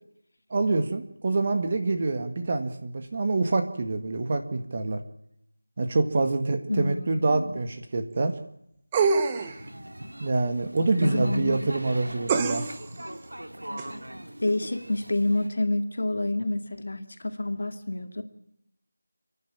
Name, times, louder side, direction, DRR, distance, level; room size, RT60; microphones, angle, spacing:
voice 1, 0.5-5.0 5.8-8.3 10.2-12.6, right 3 dB, 30° right, 7 dB, 1.9 m, -26 dB
voice 2, 6.7-7.6 11.0-11.7 14.4-18.2, left 2 dB, 55° left, 7 dB, 2.4 m, -28 dB
sound 1, 8.9-9.6 12.3-12.9 13.8-13.9, right 5 dB, 10° right, 0.9 m, -25 dB
sound 2, 9.4-15.5, right 1 dB, 90° right, 3.0 m, -41 dB
30.0 x 11.0 x 8.8 m, 0.76 s
figure-of-eight pair, 175°, 0 cm